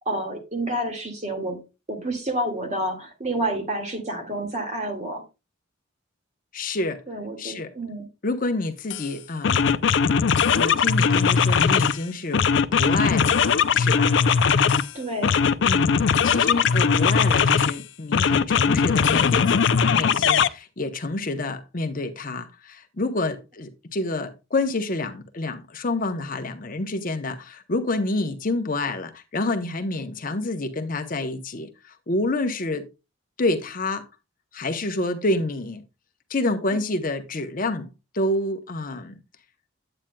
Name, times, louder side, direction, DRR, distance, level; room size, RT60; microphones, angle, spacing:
voice 1, 0.0-1.6 1.9-5.2 7.1-8.1 14.9-15.4, right 1 dB, 35° right, 1.9 m, -29 dB
voice 2, 6.5-7.0 7.4-7.7 8.2-9.8 10.6-12.4 12.7-13.5 13.7-14.2 15.7-15.9 16.2-32.9 33.4-34.0 34.5-35.8 36.3-39.2, left 2 dB, 45° left, 0.8 m, -28 dB
sound 1, 8.9-9.1 9.4-12.0 12.3-14.9 15.2-17.8 18.1-20.5, left 6 dB, 65° left, 0.4 m, -20 dB
8.8 x 8.7 x 2.2 m
head